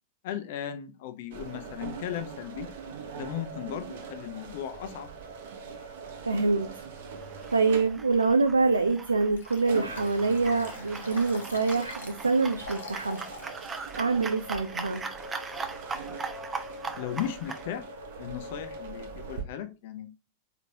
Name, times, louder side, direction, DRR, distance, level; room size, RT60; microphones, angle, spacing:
voice 1, 0.2-2.7 3.1-5.1 17.0-17.8 18.2-20.1, left 10 dB, 50° left, 0.7 m, -36 dB
sound 1, 1.3-19.4, right 4 dB, 55° right, 0.9 m, -42 dB
voice 2, 6.2-6.8 7.5-13.2 14.0-15.0, right 4 dB, 80° right, 0.4 m, -25 dB
sound 2, 7.2-17.7, right 4 dB, 15° right, 0.6 m, -40 dB
Liquid, 9.4-13.5 14.0-14.1, left 4 dB, 70° left, 1.0 m, -45 dB
4.5 x 3.9 x 2.8 m
figure-of-eight pair, 90°, 0 cm